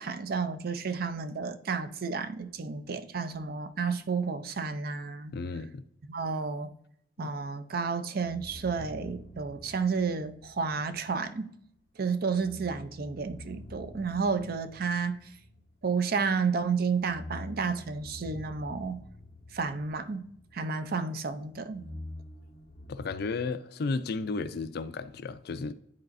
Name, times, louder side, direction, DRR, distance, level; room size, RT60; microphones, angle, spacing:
voice 1, 0.0-5.3 6.1-6.7 7.2-11.5 12.0-15.2 15.8-19.0 19.5-21.9, right 5 dB, 55° right, 0.5 m, -31 dB
voice 2, 5.3-5.9 7.2-7.3 22.9-25.7, left 4 dB, 60° left, 0.4 m, -33 dB
sound 1, 8.2-11.1 12.3-16.2 16.9-20.9 21.2-23.1, left 1 dB, 45° left, 1.6 m, -47 dB
10.5 x 4.1 x 2.6 m
head